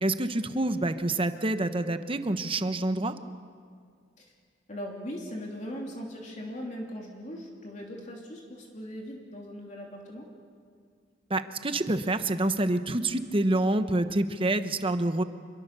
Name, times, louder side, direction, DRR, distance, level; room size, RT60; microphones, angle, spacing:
voice 1, 0.0-3.1 11.3-15.2, right 2 dB, 30° right, 10 dB, 1.0 m, -27 dB
voice 2, 4.7-10.3, equal, 40° left, -1 dB, 3.1 m, -39 dB
27.0 x 22.5 x 6.8 m, 2.1 s
head